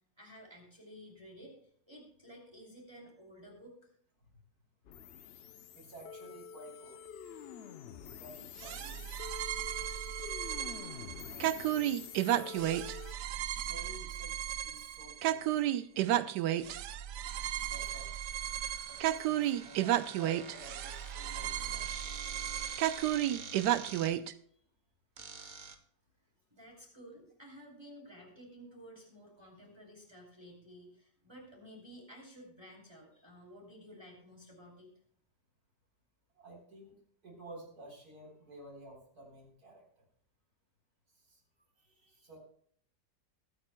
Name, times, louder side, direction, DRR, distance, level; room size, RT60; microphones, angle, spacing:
voice 1, 0.2-1.5 1.9-3.9 26.5-34.9, equal, 15° right, -2 dB, 3.1 m, -53 dB
sound 1, 4.9-13.1, left 7 dB, 80° left, 0.5 m, -47 dB
voice 2, 5.7-7.0 7.9-9.1 11.3-12.7 13.7-14.4 14.6-15.6 15.9-16.2 17.6-18.1 18.9-21.9 36.4-36.9 37.2-39.8 41.3-41.4 41.8-42.4, right 1 dB, 65° right, 0 dB, 4.4 m, -52 dB
sound 2, 8.6-24.3, right 12 dB, 90° right, 1.2 m, -33 dB
sound 3, 17.3-24.1 25.2-25.8, right 4 dB, 35° right, 0.9 m, -48 dB
23.0 x 8.9 x 2.2 m, 0.62 s
omnidirectional pair, 1.7 m